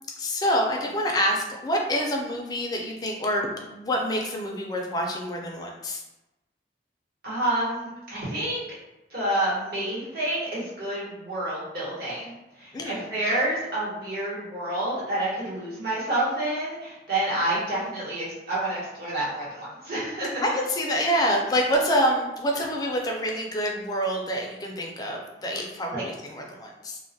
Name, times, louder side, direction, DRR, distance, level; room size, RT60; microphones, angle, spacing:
voice 1, 0.2-6.0 12.7-13.0 20.4-27.0, equal, 20° left, 0 dB, 0.3 m, -27 dB
voice 2, 7.2-8.6 9.1-20.4 22.5-22.6 25.9-26.0, right 1 dB, 60° right, -8 dB, 1.0 m, -29 dB
2.2 x 2.1 x 2.6 m, 0.99 s
head